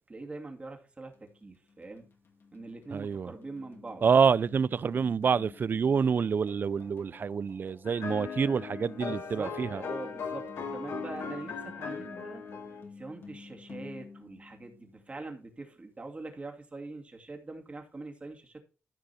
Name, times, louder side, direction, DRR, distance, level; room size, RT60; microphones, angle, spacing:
voice 1, 0.1-1.1 1.4-2.1 2.5-4.0 9.0-12.4 13.0-18.6, right 2 dB, 25° right, 2.5 m, -43 dB
sound 1, 1.1-15.3, left 4 dB, 55° left, 2.6 m, -52 dB
voice 2, 2.9-3.3 4.0-9.8, right 6 dB, 45° right, 0.4 m, -27 dB
sound 2, 7.8-12.8, left 5 dB, 80° left, 2.8 m, -38 dB
14.0 x 5.3 x 4.3 m
cardioid pair, 100°, 5 cm